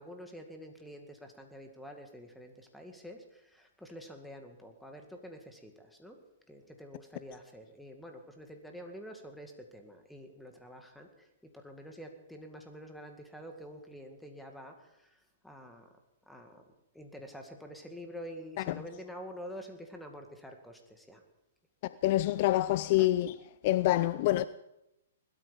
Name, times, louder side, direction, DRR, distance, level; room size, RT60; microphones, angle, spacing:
voice 1, 0.0-6.2 6.5-15.9 16.3-16.6 16.9-21.2 22.9-23.1, equal, ahead, 2.1 m, -48 dB
voice 2, 21.8-23.4 23.6-24.5, left 15 dB, 45° left, 0.5 m, -26 dB
20.5 x 12.5 x 5.3 m
hypercardioid pair, 140°, 0 cm